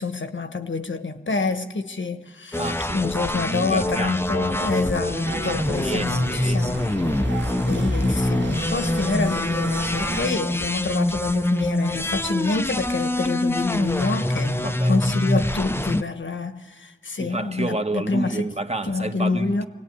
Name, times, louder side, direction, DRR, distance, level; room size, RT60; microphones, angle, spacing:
voice 1, 0.0-6.9 7.6-18.5 18.8-19.7, left 3 dB, 80° left, 1.4 m, -27 dB
sound 1, 2.5-16.0, left 1 dB, 10° left, 0.7 m, -25 dB
voice 2, 2.5-4.7 5.2-6.7 7.0-7.5 14.6-15.0 17.2-19.7, right 2 dB, 35° right, 1.5 m, -31 dB
sound 2, 5.2-10.2, right 2 dB, 70° right, 2.1 m, -33 dB
24.5 x 18.5 x 9.5 m
cardioid pair, 40°, 19 cm